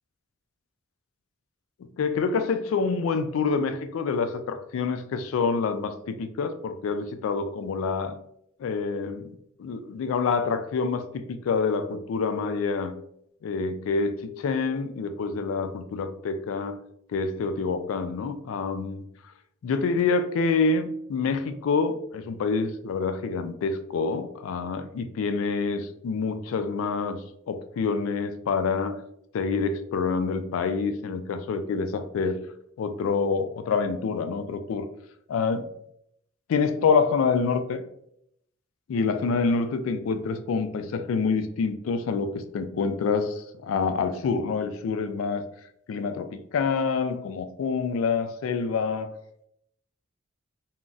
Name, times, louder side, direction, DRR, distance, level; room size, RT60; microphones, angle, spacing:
voice 1, 1.8-8.2 8.6-12.9 13.4-16.8 17.1-19.1 19.6-29.0 29.3-32.4 32.8-34.9 35.3-35.7 36.5-37.8 38.9-45.5 45.9-49.2, left 4 dB, 75° left, 9 dB, 0.3 m, -27 dB
3.8 x 2.0 x 2.3 m, 0.74 s
head